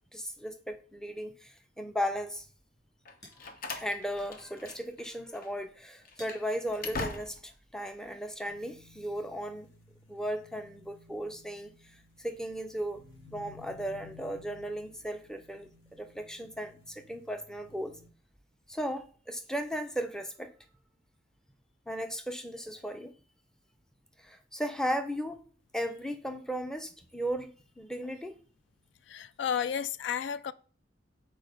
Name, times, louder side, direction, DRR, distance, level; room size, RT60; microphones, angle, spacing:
voice 1, 0.1-2.5 3.8-9.7 10.1-13.0 13.3-15.7 16.0-18.0 18.7-20.5 21.9-23.1 24.2-25.4 25.7-28.3, equal, 5° left, 0.5 m, -36 dB
sound 1, 2.7-8.1, left 1 dB, 20° left, 2.8 m, -60 dB
Slam, 3.0-5.1 5.3-5.5 6.0-7.6, left 3 dB, 50° left, 0.8 m, -41 dB
sound 2, 8.5-18.1, left 4 dB, 90° left, 1.5 m, -56 dB
voice 2, 29.0-30.5, left 8 dB, 65° left, 0.3 m, -32 dB
6.2 x 4.2 x 5.2 m
head